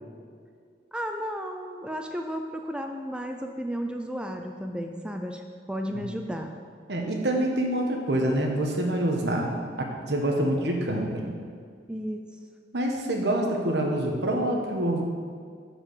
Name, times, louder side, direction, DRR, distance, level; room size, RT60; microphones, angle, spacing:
voice 1, 0.9-5.4 5.7-6.5 11.9-12.2, equal, 5° right, 3 dB, 0.4 m, -33 dB
voice 2, 6.9-9.5 9.8-11.3 12.7-15.0, right 1 dB, 70° right, 1 dB, 1.4 m, -26 dB
10.0 x 4.9 x 6.7 m, 2.1 s
head